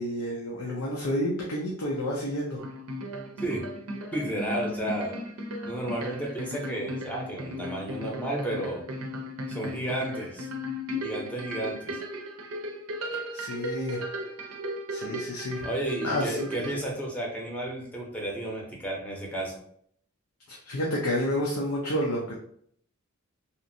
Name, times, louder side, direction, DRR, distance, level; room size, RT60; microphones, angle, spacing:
voice 1, 0.0-2.6 13.1-14.0 14.9-15.6 16.0-16.7 20.5-22.3, equal, 90° left, -3 dB, 0.6 m, -30 dB
sound 1, 2.6-16.7, equal, 80° right, 0.5 m, -36 dB
voice 2, 4.1-5.1 5.6-8.8 9.5-10.5 11.0-12.0 15.6-19.6, right 1 dB, 5° left, -2 dB, 0.6 m, -32 dB
2.8 x 2.5 x 2.6 m, 0.65 s
head